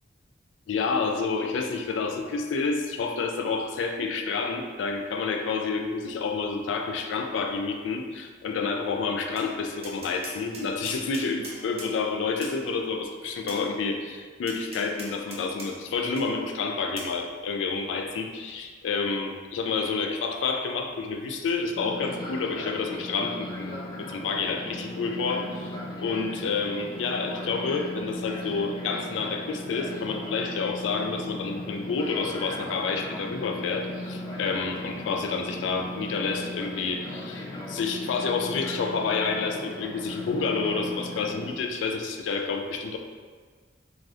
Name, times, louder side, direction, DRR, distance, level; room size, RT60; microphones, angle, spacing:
voice 1, 0.7-43.0, left 4 dB, 85° left, 5 dB, 0.3 m, -29 dB
Tap, 9.4-9.5 9.8-11.9 12.4-12.6 13.5-13.6 14.5-15.7 16.2-16.3 17.0-17.1, right 2 dB, 35° right, 0.5 m, -41 dB
Fixed-wing aircraft airplane, 21.8-41.5, left 1 dB, 20° left, 0.4 m, -37 dB
2.5 x 2.4 x 3.3 m, 1.5 s
head